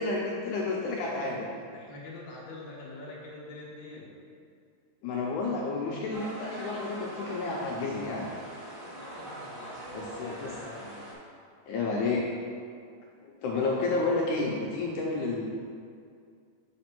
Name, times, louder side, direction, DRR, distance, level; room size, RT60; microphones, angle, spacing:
voice 1, 0.0-1.4 5.0-8.2 9.9-10.5 11.7-12.3 13.2-15.5, left 3 dB, 80° left, -2 dB, 2.0 m, -30 dB
voice 2, 1.0-4.1 8.9-11.1, left 2 dB, 45° left, -6 dB, 1.6 m, -45 dB
sound 1, 6.1-11.1, right 1 dB, 45° right, 0.6 m, -42 dB
5.1 x 5.1 x 5.9 m, 2.2 s
omnidirectional pair, 3.8 m